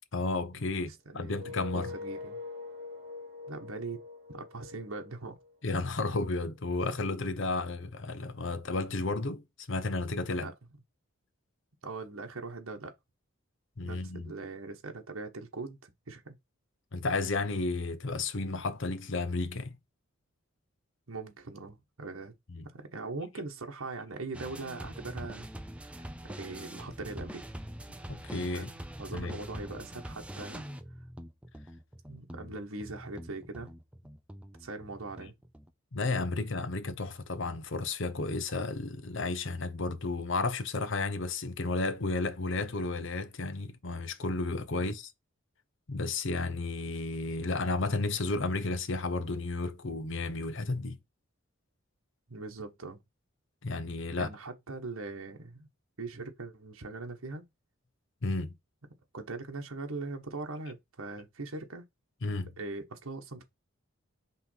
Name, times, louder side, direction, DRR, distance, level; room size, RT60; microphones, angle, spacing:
voice 1, 0.1-1.9 5.6-10.5 13.8-14.3 16.9-19.8 22.5-22.7 28.1-28.7 29.1-29.3 35.9-45.1 45.9-51.0 53.6-54.3 58.2-58.5 62.2-62.5, left 3 dB, 60° left, 0.8 m, -32 dB
voice 2, 0.7-2.4 3.5-4.0 4.3-5.4 10.3-10.5 11.8-12.9 13.8-16.3 21.1-22.3 22.7-25.5 25.8-27.4 28.5-28.7 29.0-30.6 32.1-33.7 34.6-35.3 44.7-44.9 52.3-53.0 54.2-55.7 56.0-57.4 59.1-61.8 62.6-63.4, right 3 dB, 80° right, 1.2 m, -41 dB
sound 1, 1.2-6.1, left 3 dB, 45° right, 1.8 m, -44 dB
sound 2, 24.3-35.7, equal, 5° right, 0.5 m, -44 dB
5.8 x 3.2 x 5.5 m
head